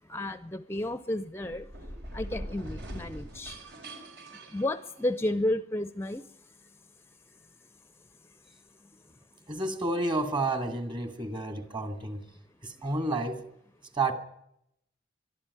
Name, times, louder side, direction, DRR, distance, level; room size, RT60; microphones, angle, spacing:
voice 1, 0.1-1.6 2.1-3.6 4.5-6.2, left 1 dB, 15° left, 0.7 m, -32 dB
sound 1, 1.4-5.4, equal, 65° right, 4.7 m, -42 dB
voice 2, 9.5-12.2 12.6-13.4 13.9-14.1, right 2 dB, 25° right, 2.6 m, -30 dB
22.5 x 13.0 x 9.8 m
head